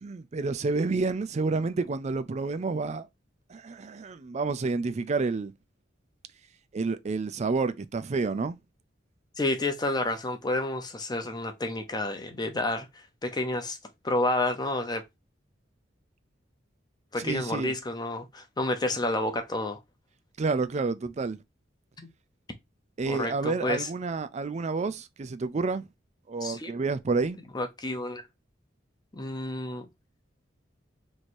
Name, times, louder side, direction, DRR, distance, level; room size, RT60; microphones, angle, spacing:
voice 1, 0.0-3.1 3.5-5.5 6.7-8.6 17.2-17.7 20.4-21.4 23.0-25.9 26.3-27.4, right 4 dB, 35° right, 0.4 m, -29 dB
voice 2, 9.4-13.8 14.0-15.0 17.1-19.8 22.0-22.1 23.1-23.9 26.4-26.7 27.5-28.2 29.1-29.9, left 2 dB, 20° left, 0.7 m, -30 dB
3.1 x 2.7 x 4.2 m
head